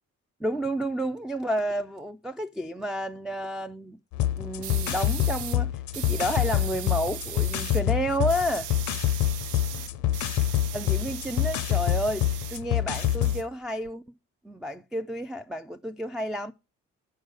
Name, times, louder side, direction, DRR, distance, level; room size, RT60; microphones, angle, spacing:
voice 1, 0.4-4.0 4.4-8.7 9.7-10.2 10.7-14.0 14.4-16.5, equal, ahead, 0.3 m, -31 dB
sound 1, 4.1-13.4, left 12 dB, 75° left, 0.6 m, -27 dB
sound 2, 4.6-5.6 5.9-7.8 8.1-12.6 12.9-13.9, right 11 dB, 80° right, 0.6 m, -39 dB
7.6 x 4.7 x 6.4 m
cardioid pair, 90°, 30 cm